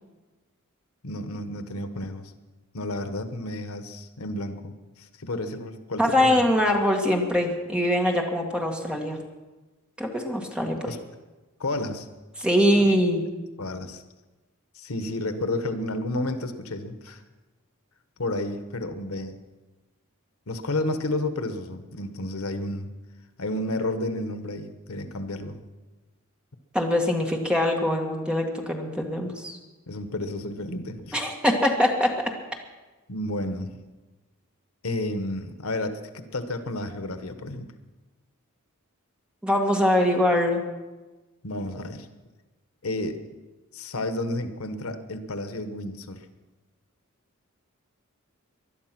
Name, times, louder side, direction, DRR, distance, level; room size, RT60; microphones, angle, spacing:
voice 1, 1.0-2.3 2.7-6.5 10.7-11.0 11.6-12.1 12.7-12.9 13.6-14.0 14.7-17.2 18.2-19.4 20.5-22.9 23.4-25.6 29.9-31.2 33.1-33.7 34.8-37.7 41.4-42.1 42.8-43.2 43.7-46.2, left 1 dB, 80° left, 9 dB, 1.2 m, -31 dB
voice 2, 6.0-9.2 10.0-10.8 12.4-13.2 26.7-29.6 31.1-32.1 39.4-40.6, left 1 dB, 5° right, 1 dB, 1.9 m, -23 dB
20.0 x 12.0 x 6.0 m, 1.2 s
head